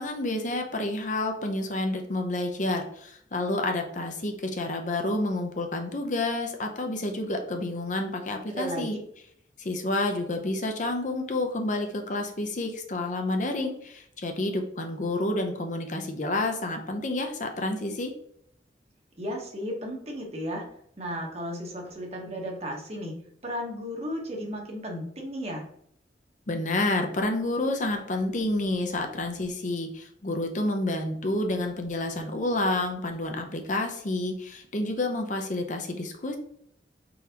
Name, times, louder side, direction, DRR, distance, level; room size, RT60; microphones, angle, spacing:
voice 1, 0.0-9.0 9.6-18.1 26.5-36.4, left 2 dB, 45° left, 4 dB, 0.7 m, -29 dB
voice 2, 8.5-8.9 19.2-20.6 21.0-23.1 23.4-25.6, equal, 35° right, 0 dB, 1.0 m, -34 dB
4.7 x 3.9 x 2.8 m, 0.67 s
head